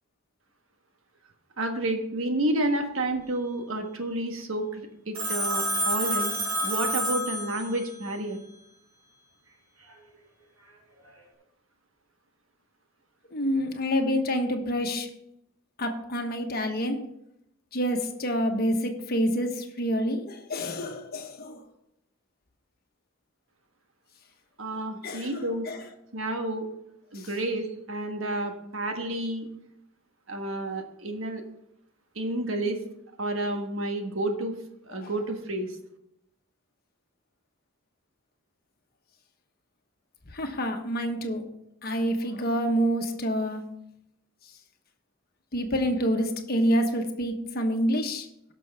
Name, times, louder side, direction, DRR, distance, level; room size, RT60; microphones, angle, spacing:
voice 1, 1.6-6.3 6.6-8.4 24.6-25.7 26.1-26.7 27.1-29.5 30.3-31.4 32.1-32.8 33.2-34.5 34.9-35.8, right 1 dB, 70° right, 5 dB, 1.5 m, -30 dB
Telephone, 5.1-8.0, equal, 90° right, 4.2 m, -28 dB
voice 2, 13.3-15.1 15.8-17.0 17.7-21.6 25.0-25.8 27.1-27.3 34.9-35.1 40.3-41.4 41.8-43.6 45.5-48.3, equal, 50° left, 4 dB, 1.3 m, -27 dB
17.0 x 6.2 x 3.5 m, 0.80 s
head